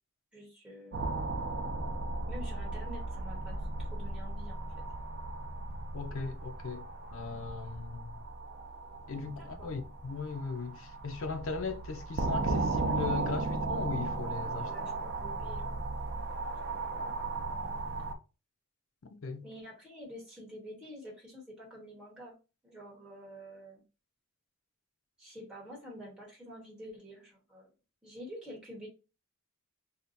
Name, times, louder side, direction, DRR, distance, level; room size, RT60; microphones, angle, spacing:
voice 1, 0.3-1.1 2.3-4.6 9.2-9.8 14.7-15.7 16.7-17.1 19.4-22.4 22.6-23.8 25.2-27.7 28.0-28.9, equal, 5° right, 1.1 m, -48 dB
sound 1, 0.9-18.1, right 3 dB, 50° right, 0.4 m, -36 dB
voice 2, 5.9-6.8 7.1-8.2 9.1-14.7 19.0-19.4, left 4 dB, 70° left, 0.5 m, -38 dB
2.7 x 2.1 x 4.0 m
head